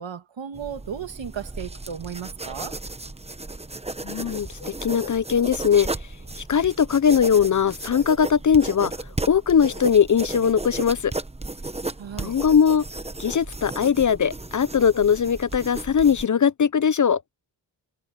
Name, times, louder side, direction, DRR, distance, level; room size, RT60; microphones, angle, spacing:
voice 1, 0.0-2.8 12.0-12.4, right 8 dB, 70° right, 1.9 m, -35 dB
sound 1, 0.5-16.2, right 2 dB, 15° right, 1.1 m, -35 dB
voice 2, 4.0-5.9 6.4-8.9 9.3-11.1 12.2-12.8 13.2-17.2, left 7 dB, 40° left, 0.5 m, -20 dB
wide cardioid pair, 90°, 47 cm